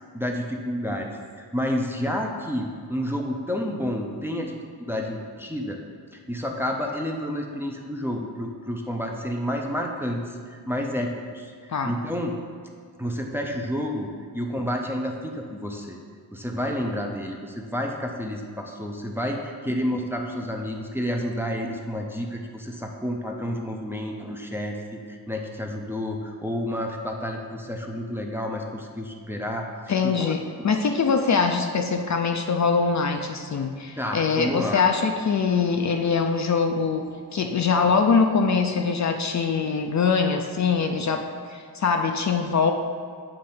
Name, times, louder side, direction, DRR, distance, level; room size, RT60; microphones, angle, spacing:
voice 1, 0.1-1.1 1.3-5.8 6.1-12.4 13.0-16.0 16.3-29.7 30.0-30.7 34.0-34.8, equal, 5° right, 1 dB, 0.5 m, -30 dB
voice 2, 29.9-42.7, left 5 dB, 45° left, 5 dB, 0.5 m, -23 dB
8.5 x 3.2 x 5.7 m, 2.1 s
wide cardioid pair, 125°, 39 cm